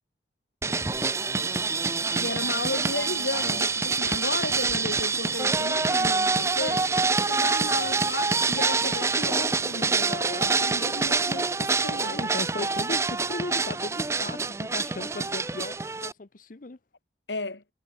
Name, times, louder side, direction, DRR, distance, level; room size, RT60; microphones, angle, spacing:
sound 1, 0.6-16.1, right 4 dB, 15° right, 0.4 m, -26 dB
voice 1, 2.1-6.9 7.3-12.3 17.3-17.6, left 2 dB, 80° left, 2.5 m, -34 dB
voice 2, 12.0-15.7 16.0-16.8, left 2 dB, 50° left, 0.8 m, -37 dB
head